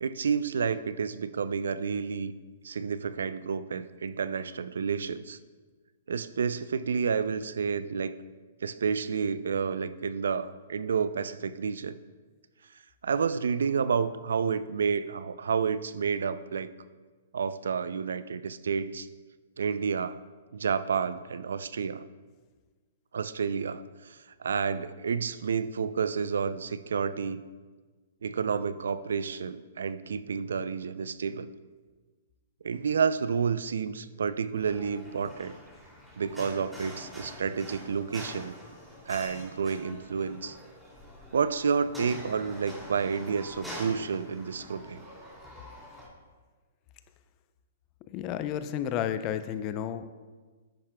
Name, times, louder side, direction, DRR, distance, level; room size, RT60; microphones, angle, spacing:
voice 1, 0.0-2.3 2.6-5.4 6.1-8.2 8.6-12.0 13.0-16.7 17.3-19.1 19.6-20.2 20.5-22.0 23.1-27.4 28.2-31.5 32.6-35.6 36.2-38.6 39.1-40.6 41.3-45.0, right 6 dB, 80° right, 14 dB, 0.4 m, -30 dB
sound 1, 34.6-46.1, equal, 5° right, 2.5 m, -45 dB
voice 2, 48.1-50.1, left 9 dB, 35° left, 11 dB, 0.5 m, -31 dB
10.5 x 8.7 x 2.2 m, 1.4 s
hypercardioid pair, 130°, 0 cm